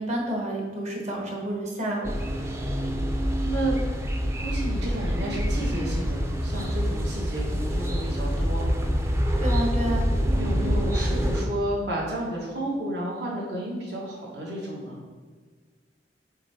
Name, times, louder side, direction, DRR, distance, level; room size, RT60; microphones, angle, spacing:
voice 1, 0.0-2.1 9.4-10.1, right 1 dB, 40° right, -1 dB, 1.3 m, -29 dB
sound 1, 2.0-11.5, equal, 15° right, 0.4 m, -26 dB
voice 2, 3.4-3.8 4.4-8.7 10.3-15.0, right 1 dB, 65° right, -3 dB, 1.5 m, -32 dB
7.3 x 3.7 x 3.5 m, 1.5 s
head